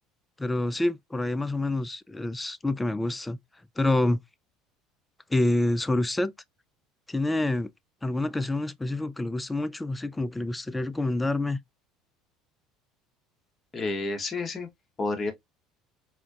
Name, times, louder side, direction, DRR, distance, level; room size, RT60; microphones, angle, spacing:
voice 1, 0.4-3.4 3.8-4.2 5.3-6.3 7.1-7.7 8.0-11.6, left 2 dB, 10° left, 0.3 m, -27 dB
voice 2, 13.7-14.7 15.0-15.3, left 3 dB, 25° left, 1.0 m, -30 dB
4.2 x 2.5 x 2.3 m
supercardioid pair, 100°, 0 cm